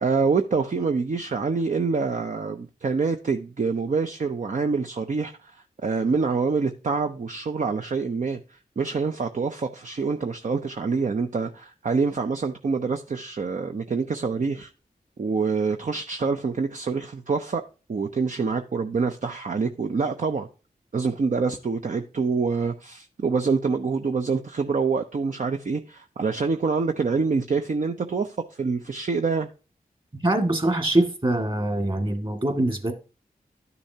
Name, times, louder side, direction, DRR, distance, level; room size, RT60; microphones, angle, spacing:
voice 1, 0.0-14.7 15.2-17.6 17.9-20.5 20.9-29.5, right 4 dB, 55° right, 0.7 m, -26 dB
voice 2, 30.2-32.9, right 1 dB, 35° right, 2.1 m, -23 dB
11.5 x 6.8 x 2.8 m
cardioid pair, 45°, 16 cm